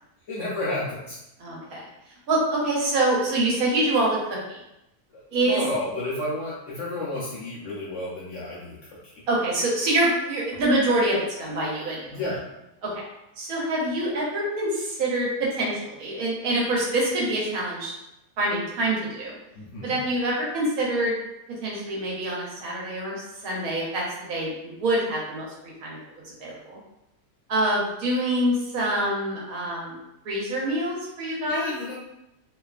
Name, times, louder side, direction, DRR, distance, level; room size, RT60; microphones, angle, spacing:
voice 1, 0.3-1.2 5.3-8.8 9.0-9.1 12.1-12.4 19.5-20.0 31.5-31.9, left 2 dB, 60° left, -7 dB, 0.8 m, -31 dB
voice 2, 1.4-1.8 2.3-4.6 5.3-5.6 9.3-12.1 12.8-13.0 13.4-17.9 18.4-19.4 19.8-21.1 21.6-23.2 23.4-24.0 24.3-26.0 26.2-26.8 27.5-29.9 30.2-31.7, right 1 dB, 65° right, -5 dB, 1.1 m, -25 dB
2.7 x 2.3 x 2.3 m, 0.88 s
omnidirectional pair, 1.8 m